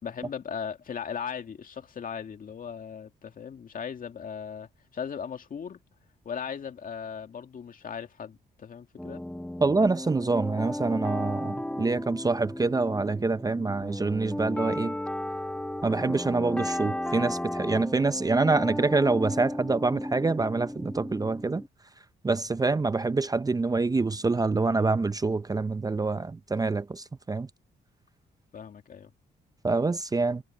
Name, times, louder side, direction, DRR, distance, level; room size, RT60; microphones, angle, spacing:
voice 1, 0.0-5.8 6.2-9.2 22.6-22.8 28.5-29.1, left 7 dB, 55° left, 2.2 m, -38 dB
sound 1, 9.0-21.7, left 1 dB, 5° left, 1.0 m, -34 dB
voice 2, 9.6-15.0 15.8-21.6 22.2-27.5 29.6-30.4, right 3 dB, 20° right, 0.6 m, -26 dB
cardioid pair, 80°, 18 cm